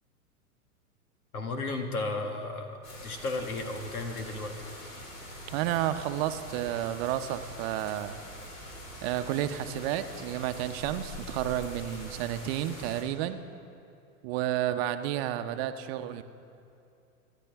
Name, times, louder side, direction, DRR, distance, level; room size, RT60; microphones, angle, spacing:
voice 1, 1.3-4.6, left 2 dB, 85° left, 5 dB, 1.9 m, -34 dB
sound 1, 2.8-13.0, equal, 65° left, 4.3 m, -44 dB
voice 2, 5.5-8.2 9.0-13.4 14.2-16.2, right 12 dB, 45° right, 9 dB, 0.8 m, -31 dB
26.0 x 11.5 x 3.5 m, 2.5 s
hypercardioid pair, 110°, 43 cm